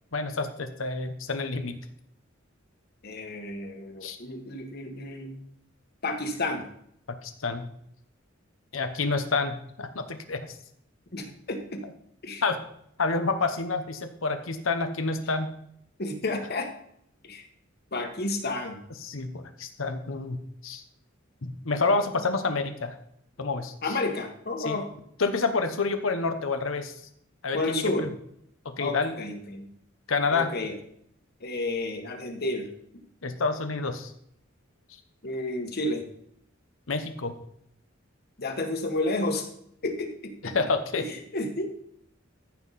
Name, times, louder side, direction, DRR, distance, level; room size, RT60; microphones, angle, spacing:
voice 1, 0.1-1.7 4.0-4.2 7.2-7.7 8.7-10.6 12.4-12.6 13.0-15.5 19.0-20.4 20.6-20.8 21.4-23.0 23.4-23.7 24.6-24.8 25.2-26.9 27.4-28.1 28.6-29.1 30.1-30.5 33.2-34.1 36.9-37.4 40.5-41.0, left 4 dB, 80° left, 8 dB, 1.0 m, -28 dB
voice 2, 3.0-5.4 6.0-6.6 11.1-11.8 12.2-12.4 16.0-16.7 17.2-17.5 17.9-18.8 23.8-24.9 27.5-28.1 28.8-29.7 30.3-30.8 31.4-32.7 35.2-36.0 38.4-39.5 39.8-40.5 41.0-41.7, left 2 dB, 50° left, 4 dB, 1.5 m, -31 dB
14.5 x 5.8 x 4.2 m, 0.71 s
head